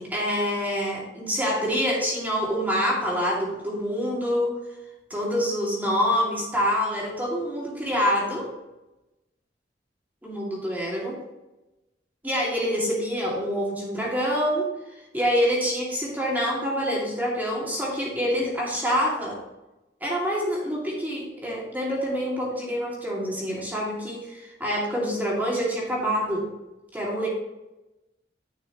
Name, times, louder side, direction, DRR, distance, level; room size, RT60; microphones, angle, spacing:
voice 1, 0.0-4.6 5.1-8.5 10.2-11.2 12.2-19.4 20.0-26.5 26.9-27.3, equal, 10° right, -4 dB, 2.3 m, -26 dB
10.5 x 6.1 x 3.0 m, 0.99 s
head